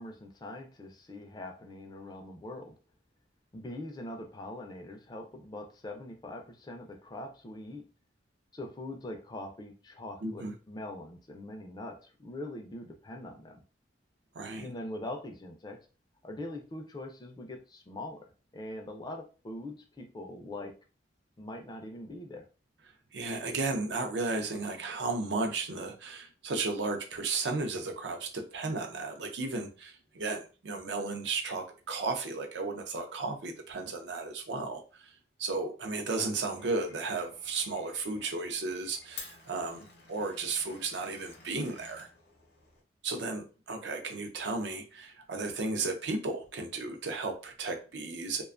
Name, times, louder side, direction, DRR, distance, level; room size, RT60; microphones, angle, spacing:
voice 1, 0.0-2.7 3.5-7.9 8.5-13.6 14.6-15.8 16.2-18.3 18.5-20.7 21.4-22.4, left 1 dB, 25° left, 4 dB, 0.4 m, -42 dB
voice 2, 10.2-10.5 14.3-14.7 23.1-35.1 35.4-42.1 43.0-48.4, right 3 dB, 75° right, 4 dB, 0.5 m, -34 dB
Glass, 36.6-42.8, left 5 dB, 60° left, 0.6 m, -52 dB
2.4 x 2.2 x 2.3 m, 0.36 s
head